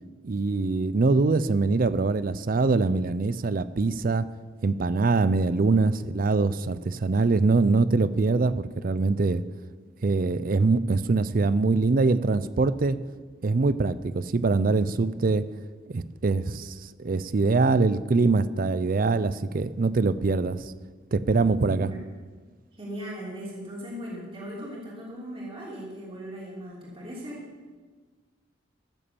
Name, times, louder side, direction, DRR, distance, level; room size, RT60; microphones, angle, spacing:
voice 1, 0.2-4.3 4.6-9.4 10.0-13.0 13.4-15.4 15.9-20.7 21.1-21.9, right 3 dB, 45° right, 15 dB, 0.5 m, -23 dB
voice 2, 21.7-22.0 22.7-27.4, equal, 30° right, -5 dB, 3.0 m, -38 dB
14.0 x 7.1 x 7.0 m, 1.4 s
head